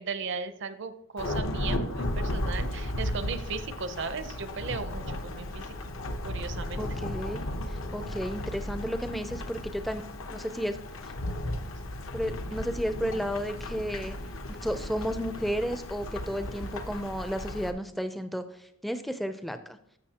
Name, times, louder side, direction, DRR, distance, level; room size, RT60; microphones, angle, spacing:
voice 1, 0.0-5.7 6.2-6.8, right 5 dB, 55° right, 11 dB, 0.7 m, -36 dB
Thunderstorm / Rain, 1.2-17.7, left 1 dB, 65° left, 0.9 m, -35 dB
voice 2, 6.8-7.4 7.7-10.0 10.3-10.8 12.1-14.2 14.5-19.8, equal, ahead, 9 dB, 0.5 m, -33 dB
13.5 x 6.8 x 2.9 m, 0.73 s
head